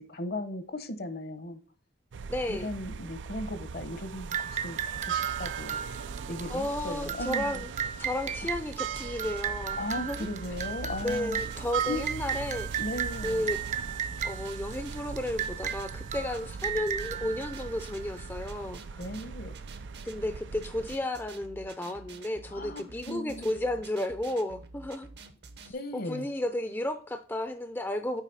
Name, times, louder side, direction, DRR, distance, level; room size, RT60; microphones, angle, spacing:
voice 1, 0.0-1.6 2.5-5.8 6.3-7.6 9.8-11.4 11.9-12.0 12.8-13.5 19.0-19.5 22.5-23.5 25.7-26.3, left 1 dB, 55° left, 1.0 m, -37 dB
sound 1, 2.1-21.0, right 6 dB, 85° right, 0.4 m, -39 dB
voice 2, 2.3-2.7 6.5-7.7 8.0-10.3 11.0-12.7 13.2-13.6 14.2-19.0 20.0-25.1 25.6-28.2, left 1 dB, 10° left, 0.5 m, -33 dB
sound 2, 4.3-18.4, right 8 dB, 40° right, 0.6 m, -36 dB
sound 3, 8.6-25.7, right 3 dB, 65° right, 1.0 m, -49 dB
8.2 x 4.8 x 4.0 m
head